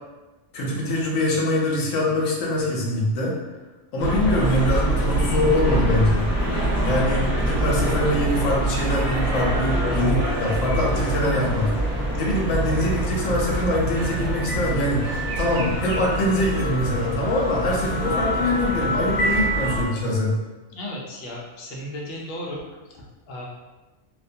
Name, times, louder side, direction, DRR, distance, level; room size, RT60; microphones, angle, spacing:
voice 1, 0.5-3.3 3.9-6.3 6.8-11.7 12.2-20.4, left 1 dB, 90° left, -2 dB, 1.0 m, -23 dB
sound 1, 4.0-19.9, right 1 dB, 30° left, 0.9 m, -25 dB
sound 2, 4.3-5.4 6.6-10.0 10.4-10.6 10.9-12.4 12.9-13.6 14.0-16.0 17.4-18.6 19.3-19.4, right 1 dB, 70° right, 0.9 m, -41 dB
voice 2, 20.7-22.6 22.9-23.5, left 1 dB, 60° left, -3 dB, 0.7 m, -35 dB
2.4 x 2.1 x 2.6 m, 1.2 s
omnidirectional pair, 1.3 m